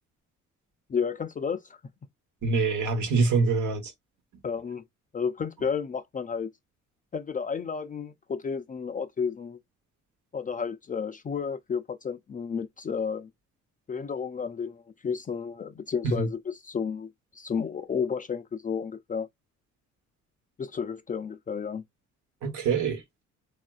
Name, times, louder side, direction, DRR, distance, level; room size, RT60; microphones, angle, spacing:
voice 1, 0.9-1.8 4.4-4.8 5.1-6.5 7.1-9.6 10.3-13.3 13.9-19.3 20.6-21.8, left 6 dB, 30° left, 0.4 m, -32 dB
voice 2, 2.4-3.9 16.0-16.3 22.4-23.0, right 4 dB, 75° right, 1.2 m, -25 dB
3.5 x 2.4 x 2.3 m
cardioid pair, 90°, 30 cm